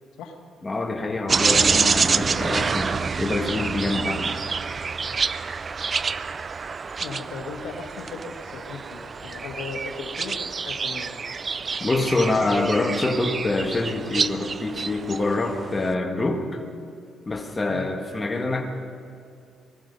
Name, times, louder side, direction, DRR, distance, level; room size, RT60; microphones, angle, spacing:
voice 1, 0.6-4.4 11.8-16.6 17.3-18.6, left 2 dB, 25° left, 3 dB, 1.7 m, -25 dB
sound 1, 1.3-15.9, right 5 dB, 40° right, 0.4 m, -27 dB
voice 2, 7.0-11.2 17.7-17.9, left 5 dB, 85° left, 5 dB, 1.3 m, -37 dB
20.0 x 13.0 x 5.4 m, 2.3 s
cardioid pair, 90°, 0 cm